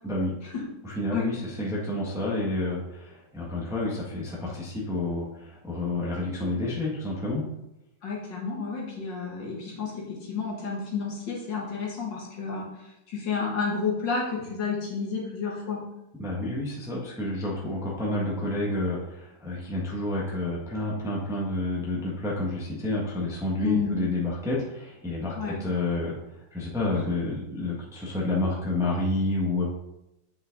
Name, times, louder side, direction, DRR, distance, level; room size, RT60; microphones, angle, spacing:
voice 1, 0.0-0.3 0.8-7.4 16.2-26.1 26.5-29.7, left 2 dB, ahead, -5 dB, 1.3 m, -29 dB
voice 2, 8.0-15.9 23.6-24.0 25.4-25.6 27.0-27.1, left 5 dB, 70° left, -2 dB, 2.1 m, -31 dB
8.1 x 5.6 x 3.9 m, 0.89 s
omnidirectional pair, 2.1 m